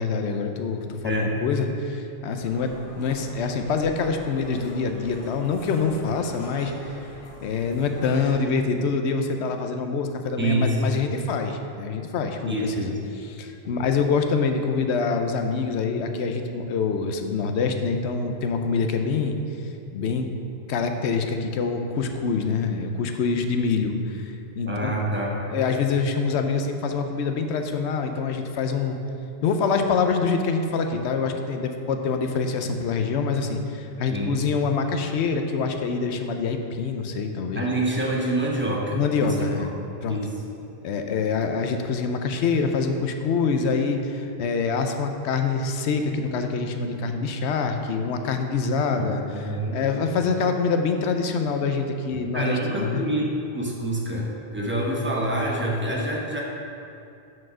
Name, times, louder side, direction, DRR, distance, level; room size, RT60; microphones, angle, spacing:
voice 1, 0.0-6.7 7.4-12.9 13.2-19.4 19.9-20.3 20.7-24.9 25.5-29.0 29.4-37.6 38.9-39.7 40.0-40.2 40.8-53.0, left 5 dB, 90° left, 5 dB, 0.9 m, -25 dB
sound 1, 2.4-8.3, left 1 dB, 35° left, 1.0 m, -43 dB
voice 2, 10.4-11.0 12.4-13.0 24.6-25.4 34.1-34.4 37.5-39.7 40.1-40.3 48.9-49.8 52.3-56.4, right 1 dB, 10° right, -3 dB, 0.9 m, -27 dB
6.3 x 4.7 x 6.1 m, 2.6 s
omnidirectional pair, 1.1 m